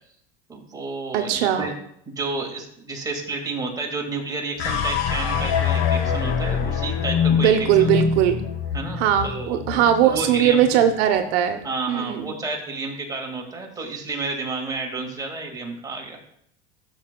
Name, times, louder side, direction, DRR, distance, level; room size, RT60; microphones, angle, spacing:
voice 1, 0.5-1.7 2.1-7.9 8.7-10.6 11.6-16.2, right 3 dB, 10° right, 0 dB, 1.9 m, -31 dB
voice 2, 1.1-1.8 7.3-8.4 9.0-11.6 11.9-12.3, right 10 dB, 75° right, 6 dB, 0.9 m, -20 dB
sound 1, 4.6-11.0, left 7 dB, 65° left, 1.3 m, -24 dB
12.0 x 6.9 x 2.3 m, 0.72 s
supercardioid pair, 125°, 31 cm